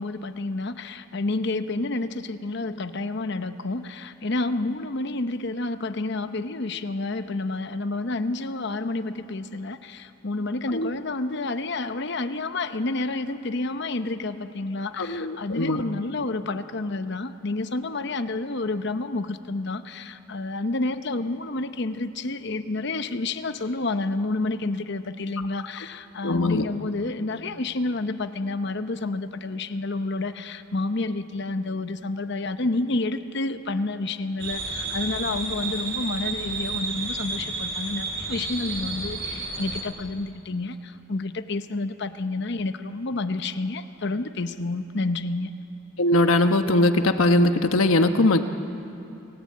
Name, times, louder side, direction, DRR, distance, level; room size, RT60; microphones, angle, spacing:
voice 1, 0.0-45.5, left 2 dB, 55° left, 10 dB, 0.8 m, -29 dB
voice 2, 15.0-15.8 26.2-26.7 46.0-48.4, left 2 dB, 90° left, 7 dB, 1.2 m, -20 dB
sound 1, 34.4-39.8, right 3 dB, 55° right, 4.3 m, -31 dB
28.5 x 17.5 x 8.6 m, 2.8 s
head